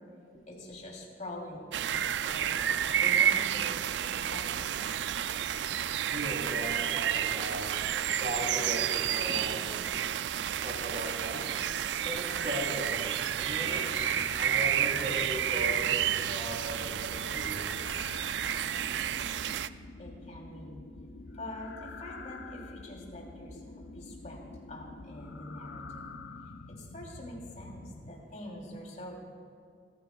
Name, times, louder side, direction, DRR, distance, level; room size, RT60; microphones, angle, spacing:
voice 1, 0.5-4.8 20.0-20.8 21.3-24.4 24.7-26.2 26.7-29.2, left 1 dB, 45° left, -1 dB, 3.1 m, -45 dB
sound 1, 1.7-19.7, right 10 dB, 75° right, 0.4 m, -30 dB
voice 2, 6.0-7.8 8.2-10.0 10.6-11.5 12.0-13.1 13.4-17.7, equal, 50° right, -2 dB, 3.3 m, -38 dB
sound 2, 13.3-28.2, left 3 dB, 75° left, 0.8 m, -47 dB
28.0 x 14.5 x 2.3 m, 2.2 s
head